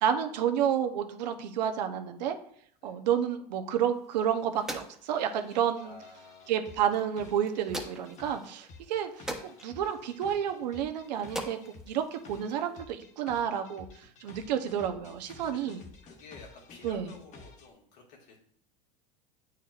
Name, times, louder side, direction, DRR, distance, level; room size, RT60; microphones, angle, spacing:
voice 1, 0.0-2.4 2.8-6.0 6.5-11.6 11.9-15.8 16.8-17.2, right 9 dB, 80° right, 6 dB, 0.8 m, -30 dB
sound 1, 3.8-12.8, right 1 dB, 5° right, 0.9 m, -45 dB
sound 2, 5.1-17.7, left 3 dB, 35° left, 1.0 m, -52 dB
voice 2, 5.8-6.6 8.9-9.0 15.4-15.7 16.0-18.4, left 4 dB, 85° left, -1 dB, 1.9 m, -52 dB
8.7 x 4.5 x 2.4 m, 0.64 s
supercardioid pair, 110°, 21 cm